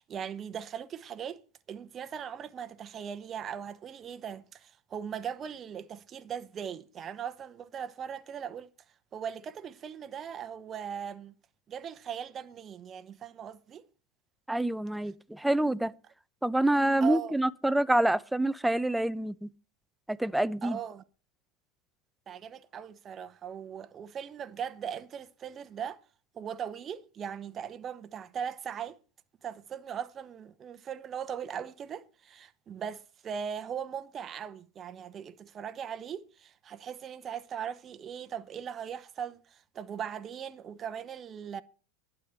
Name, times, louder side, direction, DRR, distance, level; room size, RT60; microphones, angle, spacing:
voice 1, 0.0-1.4 1.7-8.7 9.1-11.3 11.7-13.9 17.0-17.3 20.6-21.0 22.3-26.0 26.3-29.0 29.4-41.6, right 8 dB, 30° right, 0.9 m, -39 dB
voice 2, 14.5-15.9 16.4-19.5 20.1-20.8, right 1 dB, 5° right, 0.7 m, -27 dB
12.0 x 9.2 x 6.5 m
hypercardioid pair, 95°, 0 cm